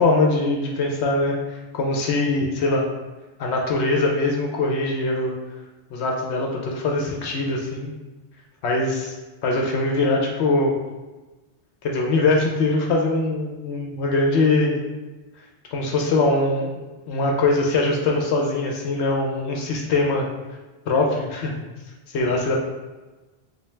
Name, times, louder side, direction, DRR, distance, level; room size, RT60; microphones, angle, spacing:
voice 1, 0.0-2.9 3.4-5.3 5.9-7.9 8.6-9.1 9.4-10.7 11.8-14.8 15.7-20.3 20.9-21.5 22.1-22.6, left 2 dB, 75° left, 0 dB, 0.8 m, -22 dB
3.4 x 2.6 x 3.1 m, 1.2 s
omnidirectional pair, 1.2 m